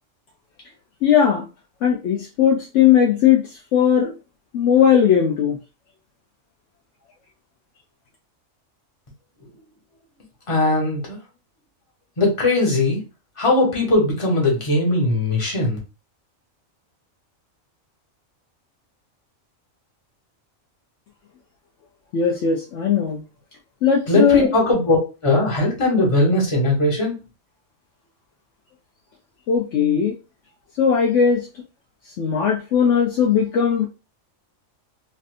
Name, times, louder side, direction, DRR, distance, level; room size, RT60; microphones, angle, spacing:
voice 1, 1.0-1.4 1.8-3.4 3.7-4.1 4.5-5.6 22.1-23.2 23.8-24.5 29.5-30.1 30.8-31.5 32.2-33.9, left 8 dB, 70° left, -1 dB, 0.9 m, -18 dB
voice 2, 10.5-11.2 12.2-13.0 13.4-15.8 24.1-25.0 25.2-27.2, left 2 dB, 25° left, -3 dB, 1.1 m, -19 dB
3.2 x 2.6 x 2.5 m, 0.30 s
omnidirectional pair, 1.4 m